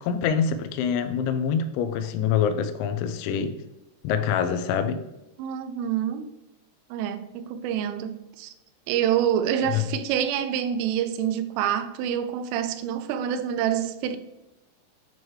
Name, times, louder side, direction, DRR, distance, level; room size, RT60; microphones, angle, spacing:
voice 1, 0.0-3.5 4.0-5.0 9.7-9.8, left 7 dB, 90° left, 3.4 m, -25 dB
voice 2, 5.4-6.3 6.9-8.5 8.9-14.2, right 9 dB, 85° right, 3.0 m, -27 dB
10.5 x 4.4 x 3.2 m
omnidirectional pair, 6.0 m